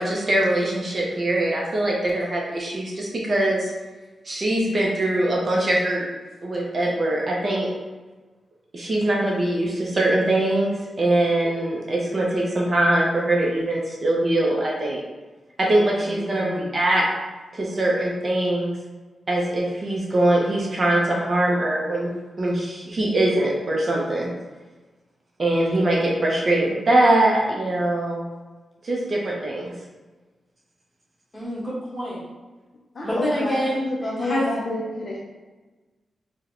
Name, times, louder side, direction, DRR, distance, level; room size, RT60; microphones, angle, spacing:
voice 1, 0.0-3.7 4.2-6.0 6.4-7.7 8.7-15.0 15.6-17.1 17.5-18.8 19.3-24.3 25.4-28.2 28.8-29.7, right 1 dB, 35° right, -2 dB, 0.5 m, -22 dB
voice 2, 16.0-16.7 31.3-32.2 33.0-34.4, equal, 20° left, -9 dB, 1.1 m, -27 dB
voice 3, 32.9-33.5 34.0-35.2, left 1 dB, 40° left, -3 dB, 0.4 m, -28 dB
4.2 x 2.1 x 2.5 m, 1.2 s
wide cardioid pair, 175°, 0 cm